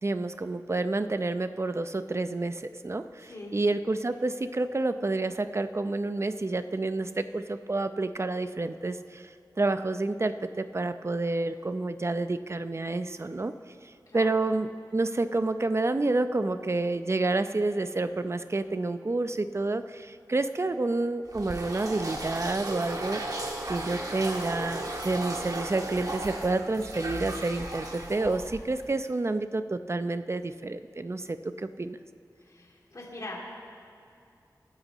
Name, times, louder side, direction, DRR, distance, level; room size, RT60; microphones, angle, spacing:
voice 1, 0.0-13.5 13.8-23.2 23.7-32.0, right 2 dB, 40° right, 10 dB, 0.6 m, -29 dB
voice 2, 3.2-3.6 14.1-14.4 32.4-33.5, left 2 dB, 50° left, -4 dB, 2.5 m, -42 dB
sound 1, 21.3-28.9, right 2 dB, 60° right, 1.6 m, -36 dB
24.5 x 9.8 x 3.1 m, 2.5 s
wide cardioid pair, 50°, 7 cm